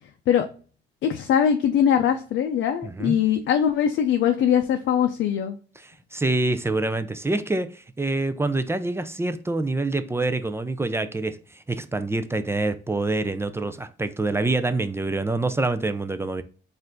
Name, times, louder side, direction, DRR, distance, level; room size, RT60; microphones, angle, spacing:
voice 1, 1.0-5.6, left 9 dB, 70° left, 0.5 m, -21 dB
voice 2, 2.8-3.2 5.8-16.4, right 2 dB, 10° right, 0.4 m, -26 dB
4.5 x 2.6 x 3.7 m
cardioid pair, 90°, 20 cm